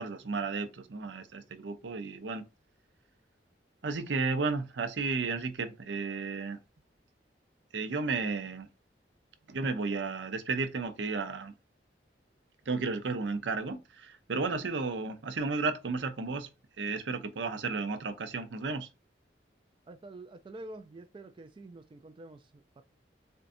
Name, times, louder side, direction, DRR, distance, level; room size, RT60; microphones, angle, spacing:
voice 1, 0.0-2.4 3.8-6.6 7.7-8.7 9.5-11.5 12.7-16.5 16.8-18.9, right 4 dB, 85° right, 0.6 m, -33 dB
voice 2, 19.9-22.8, right 2 dB, 30° right, 0.3 m, -47 dB
4.4 x 2.5 x 2.6 m
head